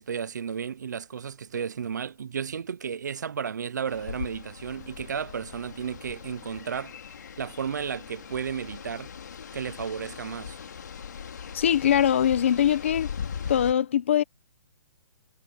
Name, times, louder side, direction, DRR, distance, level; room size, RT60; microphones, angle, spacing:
voice 1, 0.0-6.9 7.4-9.1 9.5-10.6, right 7 dB, 60° right, 0.8 m, -33 dB
sound 1, 3.9-13.7, left 7 dB, 60° left, 2.6 m, -40 dB
voice 2, 11.5-13.1 13.5-14.2, left 9 dB, 40° left, 1.4 m, -22 dB
hypercardioid pair, 180°, 11 cm